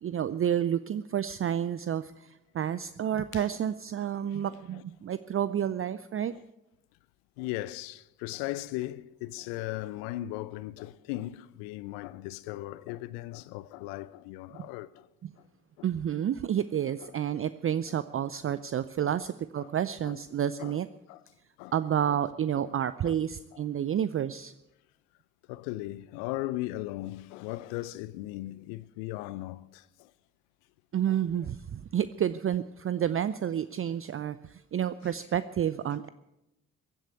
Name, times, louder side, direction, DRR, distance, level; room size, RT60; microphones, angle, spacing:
voice 1, 0.0-6.3 14.6-14.7 15.8-20.9 21.7-24.5 30.9-36.1, right 9 dB, 35° right, 0.5 m, -30 dB
voice 2, 4.5-4.8 6.3-6.4 7.4-15.1 15.4-15.5 15.8-15.9 17.0-17.1 19.0-19.1 19.6-19.7 20.0-20.2 20.6-20.8 21.1-21.2 21.6-21.7 22.1-22.2 22.6-22.7 23.0-23.2 23.5-23.6 25.5-30.1 31.1-31.2 35.8-35.9, left 17 dB, 75° left, 0.6 m, -38 dB
15.5 x 8.3 x 9.4 m
hypercardioid pair, 45°, 40 cm